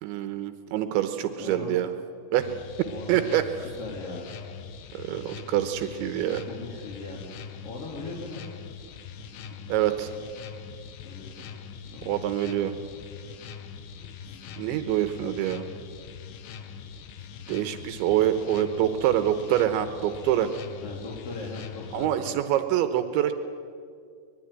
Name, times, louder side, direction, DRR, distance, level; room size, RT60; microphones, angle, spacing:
voice 1, 0.0-1.9 2.3-2.5 3.1-3.4 4.9-6.4 9.7-10.1 12.1-12.7 14.6-15.6 17.5-20.5 21.9-23.3, right 12 dB, 75° right, 9 dB, 3.1 m, -25 dB
voice 2, 1.4-1.8 2.8-3.3 3.8-4.3 6.4-7.3 7.6-8.4 11.0-11.5 11.8-12.1 14.2-14.7 20.8-22.3, left 3 dB, 35° left, -2 dB, 2.9 m, -39 dB
sound 1, 2.4-22.1, left 7 dB, 85° left, 1.8 m, -43 dB
24.0 x 21.0 x 9.9 m, 2.2 s
omnidirectional pair, 5.8 m